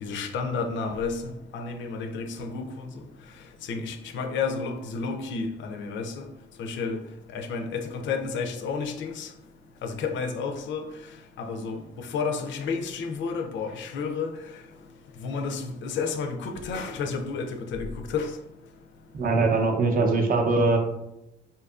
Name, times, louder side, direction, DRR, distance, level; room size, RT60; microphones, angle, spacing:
voice 1, 0.0-2.9 3.6-6.3 6.6-7.0 7.3-9.3 9.8-10.8 11.4-14.4 15.2-18.3, left 5 dB, 70° left, 6 dB, 0.4 m, -31 dB
voice 2, 19.1-20.8, right 3 dB, 45° right, 3 dB, 0.5 m, -22 dB
2.7 x 2.4 x 2.3 m, 0.86 s
cardioid pair, 90°, 20 cm